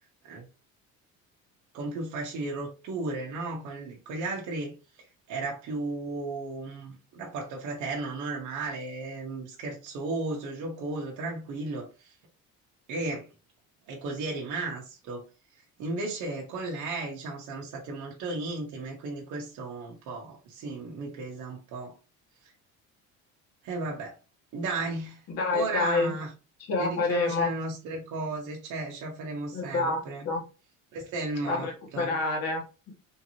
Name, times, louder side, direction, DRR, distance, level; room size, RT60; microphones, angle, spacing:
voice 1, 1.7-4.7 5.3-12.1 12.9-13.3 13.9-15.2 15.8-21.9 23.6-24.2 24.5-25.2 25.5-26.3 26.8-30.3 30.9-32.2, right 3 dB, 65° right, -1 dB, 1.1 m, -34 dB
voice 2, 25.3-26.1 26.7-27.5 29.5-30.4 31.4-32.9, left 3 dB, 50° left, 1 dB, 1.3 m, -28 dB
3.7 x 2.8 x 2.9 m, 0.32 s
cardioid pair, 150°, 32 cm